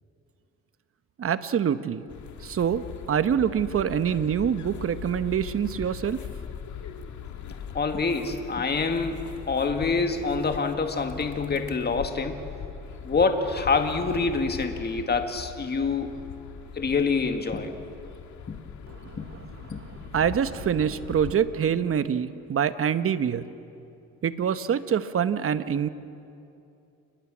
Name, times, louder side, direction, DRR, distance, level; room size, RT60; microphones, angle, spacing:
voice 1, 1.2-2.1 2.4-6.2 18.9-23.5 24.2-25.9, right 8 dB, 45° right, 12 dB, 1.0 m, -26 dB
sound 1, 2.1-21.3, left 7 dB, 70° left, 1.8 m, -40 dB
voice 2, 7.7-9.2 9.5-12.5 13.0-16.2 16.7-17.8 18.5-18.6 19.2-19.3 19.7-19.8, left 4 dB, 35° left, 6 dB, 1.9 m, -26 dB
28.5 x 20.5 x 6.2 m, 2.6 s
cardioid pair, 90°, 30 cm